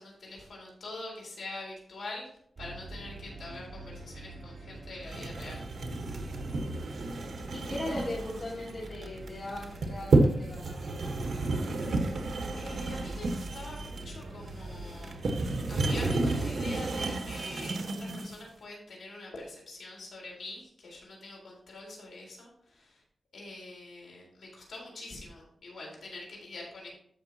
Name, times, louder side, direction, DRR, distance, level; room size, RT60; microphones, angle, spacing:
voice 1, 0.0-2.3 2.6-5.6 12.6-15.2 15.7-23.0 23.3-26.9, left 2 dB, 80° left, -2 dB, 3.8 m, -44 dB
sound 1, 2.6-16.2, right 2 dB, 40° right, 2.8 m, -44 dB
sound 2, 5.1-18.4, right 2 dB, 65° right, 1.2 m, -31 dB
voice 2, 7.5-11.1, left 1 dB, 50° left, -6 dB, 3.0 m, -39 dB
14.0 x 5.8 x 2.9 m, 0.67 s
wide cardioid pair, 155°, 0 cm